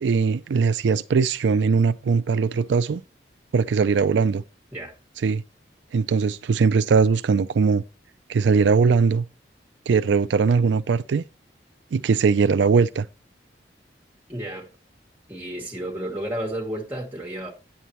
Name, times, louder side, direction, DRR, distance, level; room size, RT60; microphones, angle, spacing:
voice 1, 0.0-3.0 3.5-4.4 5.2-5.4 5.9-7.8 8.3-9.2 9.9-11.2 11.9-13.1, right 5 dB, 80° right, 0.4 m, -20 dB
voice 2, 14.3-14.7 15.3-17.5, right 1 dB, 10° right, 2.4 m, -32 dB
9.3 x 7.1 x 3.1 m
head